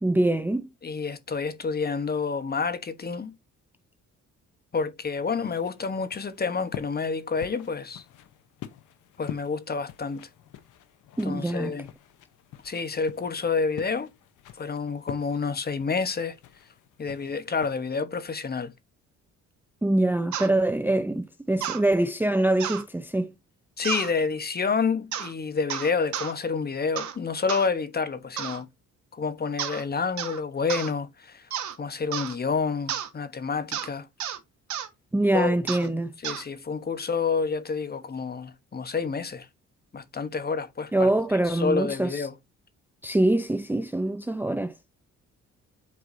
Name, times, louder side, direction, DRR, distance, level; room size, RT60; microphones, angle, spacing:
voice 1, 0.0-0.7 11.2-11.7 19.8-23.3 35.1-36.1 40.9-42.2 43.0-44.7, right 1 dB, 5° right, 0.6 m, -24 dB
voice 2, 0.8-3.3 4.7-8.0 9.2-10.3 11.2-11.9 12.6-14.1 14.5-16.4 17.0-18.7 23.8-28.7 29.1-31.5 31.8-34.1 35.3-35.5 35.8-35.9 36.2-39.5 39.9-41.1 41.4-42.3, left 5 dB, 30° left, 1.1 m, -29 dB
sound 1, 5.0-17.8, left 11 dB, 85° left, 1.0 m, -46 dB
sound 2, 20.3-20.5 21.6-21.8 22.6-22.8 23.8-24.1 25.1-25.3 25.7-26.3 27.0-27.2 27.5-27.7 28.4-28.6 29.6-29.8 30.2-30.4 30.7-30.9 31.5-31.8 32.1-32.3 32.9-33.1 33.7-33.9 34.2-34.4 34.7-34.9 35.7-35.9 36.2-36.4, right 10 dB, 70° right, 1.4 m, -32 dB
8.3 x 4.6 x 2.7 m
cardioid pair, 90°, 30 cm